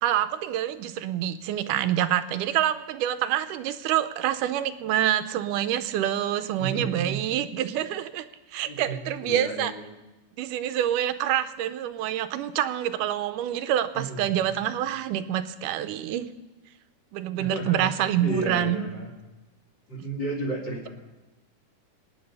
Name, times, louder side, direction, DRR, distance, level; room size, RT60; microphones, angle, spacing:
voice 1, 0.0-8.3 8.5-9.7 10.4-16.3 17.1-18.9, right 11 dB, 80° right, 11 dB, 2.2 m, -27 dB
voice 2, 6.6-7.2 8.7-9.8 13.9-14.3 17.4-19.1 19.9-20.9, right 2 dB, 35° left, 0 dB, 2.7 m, -32 dB
26.0 x 9.6 x 5.5 m, 1.1 s
omnidirectional pair, 3.8 m